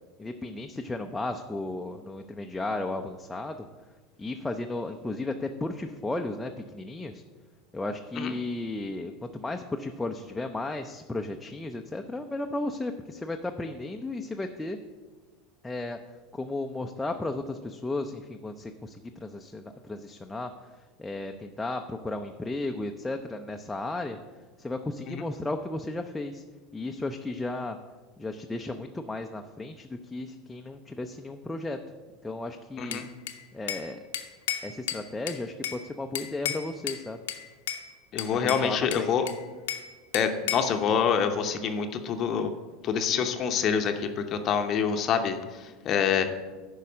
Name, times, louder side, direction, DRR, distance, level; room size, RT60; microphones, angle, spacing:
voice 1, 0.2-3.6 4.2-7.2 7.7-14.8 15.6-16.0 16.3-20.5 21.0-24.2 24.6-26.4 26.7-27.8 28.2-31.8 32.2-33.0 33.5-34.0 34.6-37.2 38.3-39.3, left 2 dB, 10° left, 4 dB, 0.6 m, -34 dB
Bell / Glass, 32.9-33.9 34.1-35.8 36.1-37.0 37.3-37.8 38.2-39.9 40.1-40.8, left 10 dB, 70° left, 0.8 m, -34 dB
voice 2, 38.1-39.3 40.1-42.5 42.8-46.2, left 7 dB, 40° left, 6 dB, 0.8 m, -26 dB
11.0 x 4.7 x 6.3 m, 1.3 s
figure-of-eight pair, 80°, 0 cm